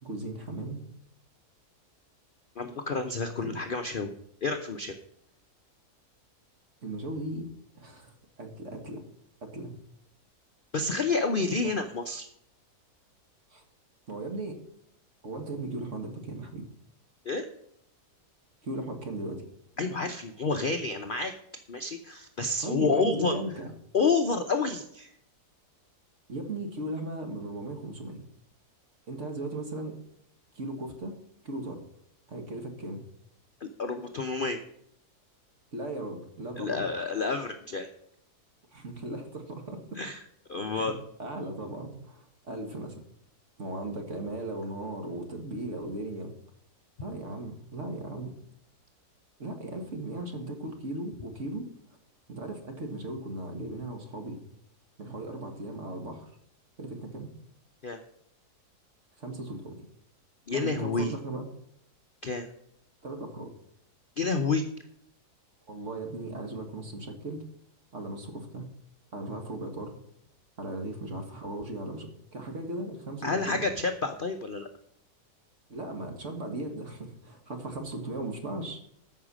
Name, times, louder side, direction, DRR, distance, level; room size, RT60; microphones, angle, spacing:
voice 1, 0.0-0.8 3.4-3.6 6.8-7.4 7.8-9.0 9.4-9.8 13.5-13.6 14.1-14.6 15.2-16.7 18.6-19.4 22.6-23.7 26.3-28.2 29.1-30.0 30.6-31.2 31.4-31.8 32.3-33.0 35.7-36.9 38.7-39.8 40.7-40.9 41.2-43.0 43.6-46.3 47.0-48.4 49.4-51.7 52.3-54.4 55.0-56.3 56.8-57.3 59.2-59.9 60.5-61.5 63.0-63.5 65.7-67.4 67.9-68.7 69.1-70.0 70.6-73.7 75.7-78.8, right 2 dB, 50° right, 4 dB, 2.0 m, -37 dB
voice 2, 2.6-4.1 4.4-5.0 10.7-12.3 17.2-17.5 19.8-21.3 21.7-23.3 23.9-25.1 33.6-34.6 36.6-37.9 40.0-40.2 40.5-41.0 57.8-58.0 60.5-61.1 62.2-62.5 64.2-64.7 73.2-74.7, left 4 dB, 50° left, 6 dB, 0.6 m, -29 dB
13.5 x 5.7 x 6.2 m, 0.71 s
omnidirectional pair, 1.7 m